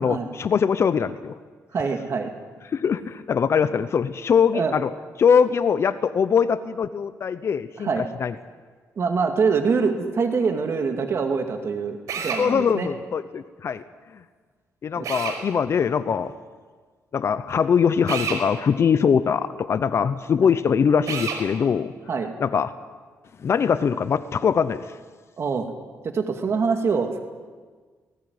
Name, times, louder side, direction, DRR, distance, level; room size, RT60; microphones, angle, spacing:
voice 1, 0.0-1.3 2.7-4.9 5.2-7.9 8.2-8.3 12.4-13.8 14.8-16.3 17.1-21.9 22.4-22.7 23.4-24.8, left 7 dB, 50° left, 13 dB, 0.8 m, -22 dB
voice 2, 1.7-2.3 4.5-4.7 7.8-8.0 9.0-12.9 15.0-15.1 22.1-22.3 25.4-25.7 26.0-27.2, right 5 dB, 50° right, 4 dB, 2.2 m, -24 dB
Drill, 12.1-12.4 15.0-15.4 18.1-18.4 21.1-21.4, right 6 dB, 75° right, 4.8 m, -28 dB
19.5 x 19.0 x 9.6 m, 1.5 s
cardioid pair, 105°, 6 cm